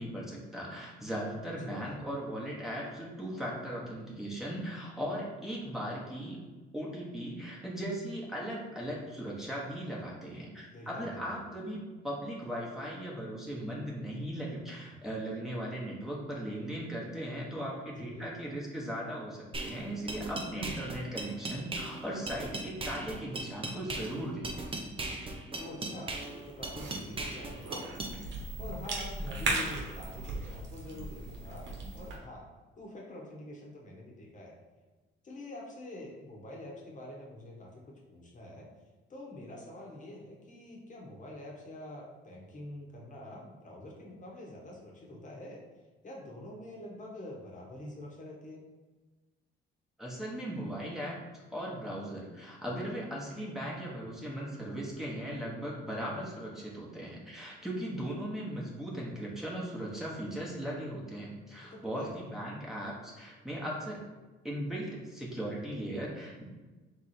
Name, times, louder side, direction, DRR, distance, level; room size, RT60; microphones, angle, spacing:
voice 1, 0.0-6.4 6.7-24.7 50.0-51.2 51.5-64.0 64.4-66.4, right 1 dB, ahead, -5 dB, 1.1 m, -38 dB
voice 2, 1.4-2.0 10.7-11.4 17.9-18.3 25.6-28.0 28.6-31.7 31.9-32.4 32.8-34.5 35.2-38.7 39.1-45.6 46.0-48.7 56.1-56.3 61.7-62.2, left 1 dB, 40° left, -2 dB, 1.3 m, -46 dB
sound 1, 19.5-28.1, right 2 dB, 25° right, 0.7 m, -38 dB
Cough / Chewing mastication, 26.2-32.2, right 2 dB, 65° right, 1.1 m, -37 dB
3.6 x 3.3 x 4.2 m, 1.2 s
cardioid pair, 90°, 20 cm